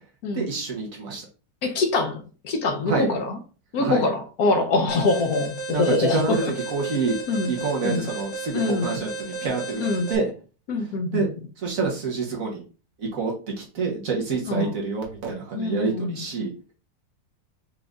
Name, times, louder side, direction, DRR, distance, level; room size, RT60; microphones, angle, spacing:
voice 1, 0.3-1.3 2.9-3.1 3.8-4.1 5.7-7.2 7.5-9.8 10.1-10.3 11.1-11.3 11.6-12.6 13.0-16.5, right 4 dB, 55° right, 0 dB, 1.4 m, -27 dB
voice 2, 1.6-3.4 3.7-6.5 7.3-7.5 7.8-8.0 8.5-8.9 9.8-10.1 10.7-11.3 14.5-14.7 15.5-16.2, left 3 dB, 70° left, 6 dB, 1.1 m, -24 dB
Alarm, 4.9-10.2, right 3 dB, 20° left, 0.9 m, -34 dB
5.1 x 2.5 x 3.4 m, 0.35 s
omnidirectional pair, 1.8 m